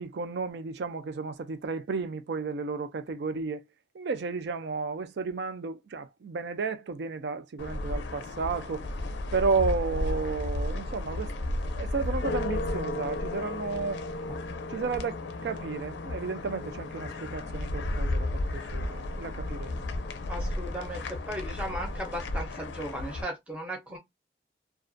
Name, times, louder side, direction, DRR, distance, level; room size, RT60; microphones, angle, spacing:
voice 1, 0.0-3.6 3.9-8.9 9.3-11.3 11.7-14.0 14.7-15.2 15.4-19.9, right 4 dB, 70° right, 0.4 m, -32 dB
sound 1, 7.6-23.2, left 2 dB, 80° left, 0.4 m, -33 dB
voice 2, 20.3-24.0, right 1 dB, 5° right, 0.6 m, -36 dB
2.3 x 2.1 x 2.5 m
head